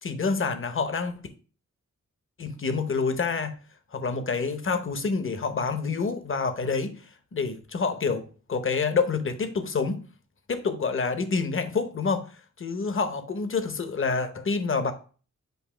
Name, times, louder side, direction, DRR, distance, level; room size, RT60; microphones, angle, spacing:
voice 1, 0.0-1.1 2.4-3.6 3.9-7.0 7.3-10.0 10.5-12.3 12.6-14.9, left 4 dB, 40° left, 0.8 m, -27 dB
7.9 x 2.7 x 4.9 m
wide cardioid pair, 95°, 31 cm